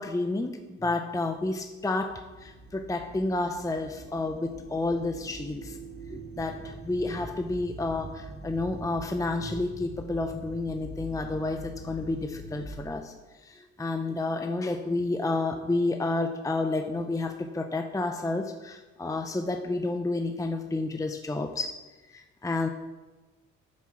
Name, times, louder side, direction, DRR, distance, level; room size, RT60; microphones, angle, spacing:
voice 1, 0.0-5.8 6.1-13.1 13.4-21.8 22.1-22.7, left 2 dB, 10° left, 6 dB, 0.7 m, -30 dB
sound 1, 1.8-12.7, right 2 dB, 50° right, 3.4 m, -43 dB
9.1 x 7.5 x 6.0 m, 1.2 s
cardioid pair, 90°, 30 cm